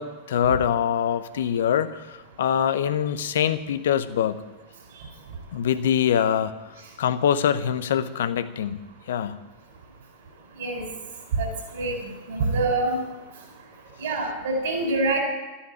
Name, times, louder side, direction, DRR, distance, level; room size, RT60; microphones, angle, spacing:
voice 1, 0.0-4.4 5.5-6.5 7.0-8.8 9.1-9.4, left 9 dB, 60° left, 13 dB, 0.8 m, -24 dB
voice 2, 11.3-13.0 14.0-15.2, right 2 dB, 60° right, 3 dB, 4.2 m, -26 dB
13.0 x 9.9 x 8.8 m, 1.1 s
figure-of-eight pair, 90°, 0 cm